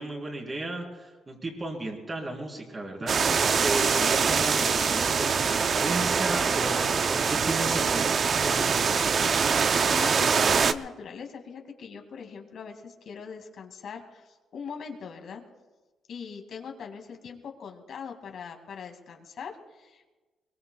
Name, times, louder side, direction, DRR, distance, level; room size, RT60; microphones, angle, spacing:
voice 1, 0.0-9.1, right 2 dB, 25° right, 0 dB, 3.8 m, -34 dB
sound 1, 3.1-10.7, right 5 dB, 50° right, 0.6 m, -24 dB
voice 2, 3.8-4.1 9.4-15.4 16.1-20.2, left 6 dB, 65° left, 3 dB, 2.3 m, -41 dB
22.5 x 22.5 x 2.4 m, 1.2 s
cardioid pair, 90°, 0 cm